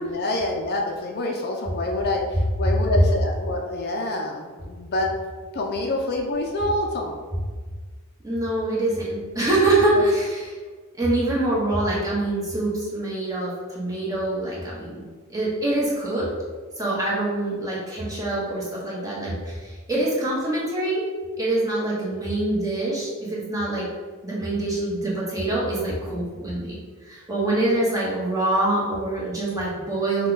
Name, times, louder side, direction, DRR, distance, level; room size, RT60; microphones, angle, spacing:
voice 1, 0.0-5.1 5.5-7.2 9.9-10.0, left 2 dB, 45° left, 1 dB, 0.4 m, -27 dB
voice 2, 8.2-10.5 11.0-15.0 15.3-16.2 16.8-21.0 21.4-23.9 24.2-26.8 27.0-30.3, right 2 dB, 15° right, -6 dB, 1.2 m, -25 dB
5.4 x 2.3 x 3.9 m, 1.4 s
head